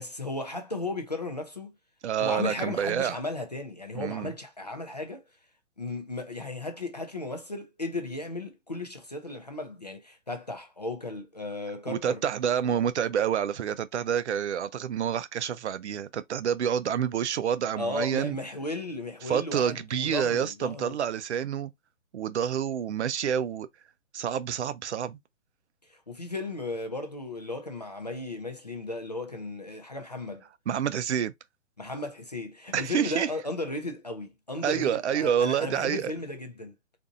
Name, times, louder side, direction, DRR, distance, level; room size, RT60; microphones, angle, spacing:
voice 1, 0.0-1.8 2.2-5.2 5.8-12.2 12.6-12.8 17.8-21.0 25.9-30.5 31.8-36.7, left 2 dB, 35° left, 0.4 m, -35 dB
voice 2, 2.0-3.2 3.9-4.3 11.9-18.4 19.3-21.7 22.1-23.7 24.1-25.2 30.7-31.3 32.7-33.3 34.6-36.1, right 8 dB, 60° right, 0.5 m, -28 dB
4.0 x 2.6 x 2.4 m
hypercardioid pair, 165°, 39 cm